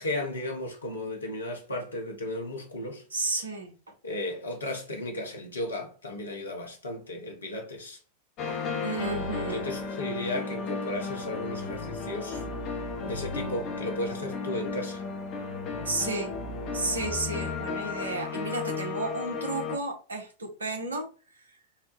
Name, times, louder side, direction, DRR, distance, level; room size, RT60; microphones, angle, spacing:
voice 1, 0.0-3.3 4.0-8.0 9.1-12.4 13.0-15.0, left 1 dB, 75° left, 0.9 m, -35 dB
voice 2, 3.1-3.7 8.8-9.7 15.8-16.3 16.7-21.1, right 3 dB, 75° right, 0.8 m, -32 dB
sound 1, 8.4-19.8, left 4 dB, 35° left, 0.7 m, -34 dB
3.7 x 2.2 x 2.9 m
figure-of-eight pair, 90°, 0 cm